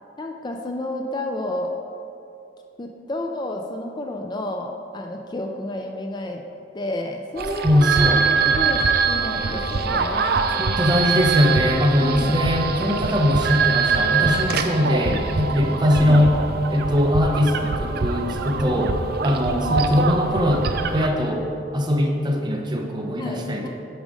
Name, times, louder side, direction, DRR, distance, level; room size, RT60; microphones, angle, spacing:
voice 1, 0.2-1.7 2.8-6.4 6.7-10.4 12.0-12.4 16.0-16.3 23.2-23.7, left 1 dB, 25° left, 3 dB, 0.4 m, -31 dB
sound 1, 7.4-21.1, right 5 dB, 55° right, 0.5 m, -23 dB
voice 2, 7.6-8.2 10.6-16.3 16.7-19.0 19.2-21.5 21.7-23.7, left 1 dB, 25° right, 1 dB, 0.8 m, -21 dB
8.9 x 5.1 x 4.9 m, 2.7 s
head